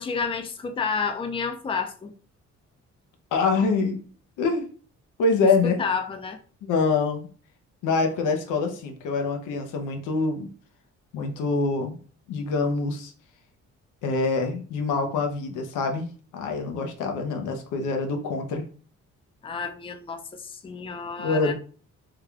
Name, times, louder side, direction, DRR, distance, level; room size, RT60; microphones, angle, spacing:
voice 1, 0.0-2.1 5.6-6.4 19.4-21.5, left 5 dB, 20° left, 0.4 m, -30 dB
voice 2, 3.3-4.0 4.4-4.7 5.2-5.8 6.6-7.3 7.8-10.5 11.1-12.0 12.3-13.1 14.0-16.1 16.3-18.6 21.2-21.5, left 4 dB, 85° left, 0.7 m, -25 dB
3.5 x 2.3 x 3.2 m
cardioid pair, 90°, 30 cm